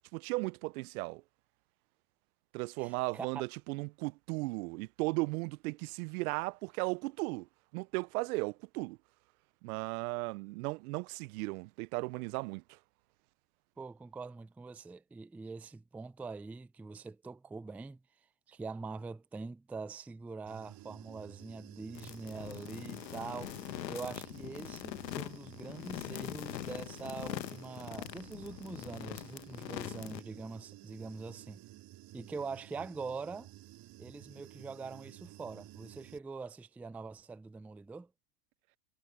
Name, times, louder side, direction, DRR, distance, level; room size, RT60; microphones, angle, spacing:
voice 1, 0.1-1.2 2.5-7.5 7.7-9.0 9.6-12.8, right 24 dB, 60° right, 0.6 m, -36 dB
voice 2, 2.8-3.4 13.8-18.0 18.5-31.6 32.1-33.5 34.0-38.1, right 4 dB, 5° right, 0.4 m, -44 dB
Human voice / Buzz, 20.5-36.2, right 15 dB, 45° right, 3.0 m, -53 dB
sound 1, 21.9-30.2, left 13 dB, 85° left, 1.1 m, -43 dB
hypercardioid pair, 95°, 49 cm